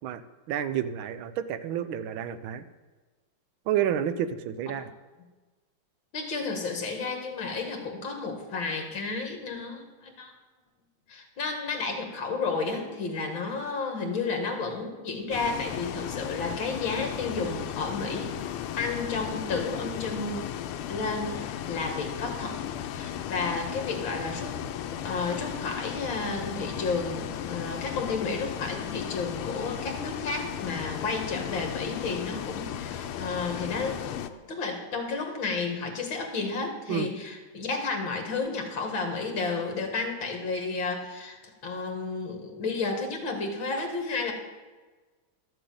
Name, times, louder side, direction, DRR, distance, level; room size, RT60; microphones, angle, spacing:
voice 1, 0.5-2.6 3.7-4.9 36.9-37.1, right 10 dB, 75° right, 12 dB, 1.5 m, -30 dB
voice 2, 6.1-10.3 11.1-18.5 18.8-20.5 20.9-22.6 22.9-24.6 24.9-34.2 34.5-41.4 41.6-44.3, left 4 dB, 65° left, 3 dB, 2.7 m, -32 dB
Bus, 15.3-34.3, left 10 dB, 85° left, 1.6 m, -35 dB
12.5 x 7.8 x 7.8 m, 1.3 s
omnidirectional pair, 2.3 m